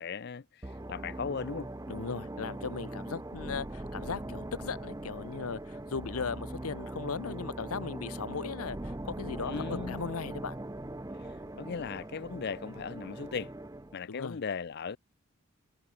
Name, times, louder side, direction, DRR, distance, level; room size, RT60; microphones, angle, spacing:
voice 1, 0.0-1.7 9.5-10.1 11.2-13.5 13.9-15.0, left 5 dB, 45° left, 0.5 m, -38 dB
sound 1, 0.6-14.0, right 1 dB, 15° right, 0.7 m, -41 dB
voice 2, 1.9-10.6 14.1-14.4, left 5 dB, 80° left, 0.7 m, -37 dB
head